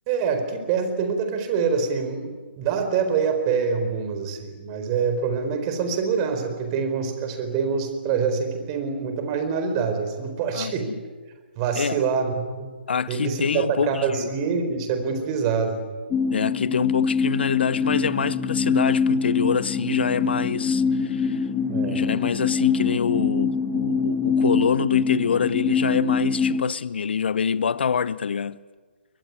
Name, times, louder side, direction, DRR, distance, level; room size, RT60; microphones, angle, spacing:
voice 1, 0.1-10.9 11.6-12.7 13.1-15.8 21.7-22.1, right 6 dB, 30° right, 4.4 m, -25 dB
voice 2, 12.9-14.3 16.3-21.5 21.9-28.6, left 6 dB, 65° left, 0.8 m, -25 dB
sound 1, 16.1-26.6, left 5 dB, 15° left, 2.0 m, -24 dB
23.0 x 21.0 x 9.7 m
figure-of-eight pair, 140°, 6 cm